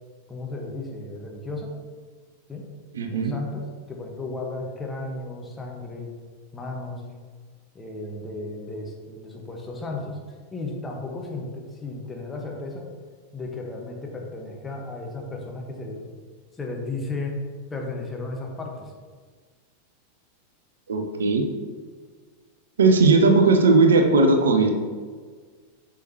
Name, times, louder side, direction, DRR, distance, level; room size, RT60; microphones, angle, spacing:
voice 1, 0.3-1.8 2.5-2.7 3.1-6.1 6.5-7.0 7.7-10.2 10.5-12.9 13.3-16.1 16.5-17.4 17.7-18.9, left 2 dB, 15° left, 0 dB, 1.3 m, -34 dB
voice 2, 2.9-3.3 20.9-21.4 22.8-24.7, right 3 dB, 65° right, 5 dB, 0.7 m, -17 dB
8.2 x 6.3 x 3.0 m, 1.5 s
figure-of-eight pair, 90°, 0 cm